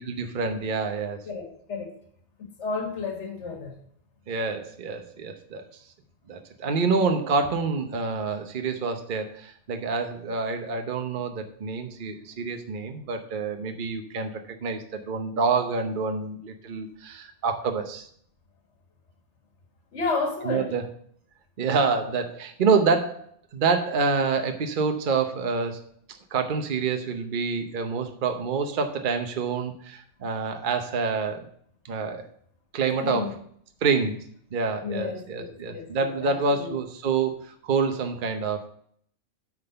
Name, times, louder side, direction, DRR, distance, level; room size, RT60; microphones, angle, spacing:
voice 1, 0.0-1.2 4.3-5.6 6.3-18.1 20.4-20.9 21.6-25.8 26.3-31.5 31.8-32.3 32.7-33.3 33.8-34.2 34.5-38.7, right 4 dB, 45° right, 6 dB, 0.9 m, -27 dB
voice 2, 1.3-1.9 2.4-3.8 19.9-20.7 33.0-33.3 34.8-36.7, left 4 dB, 60° left, 2 dB, 1.8 m, -32 dB
9.2 x 3.9 x 6.7 m, 0.63 s
omnidirectional pair, 1.3 m